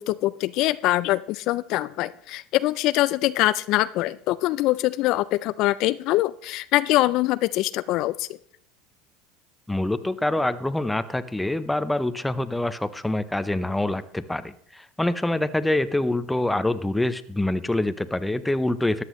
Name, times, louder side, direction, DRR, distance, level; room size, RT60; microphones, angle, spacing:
voice 1, 0.0-8.3, left 17 dB, 60° left, 16 dB, 0.3 m, -23 dB
voice 2, 9.7-19.0, left 1 dB, 5° left, 13 dB, 0.6 m, -25 dB
14.0 x 9.8 x 3.1 m, 0.64 s
hypercardioid pair, 95°, 0 cm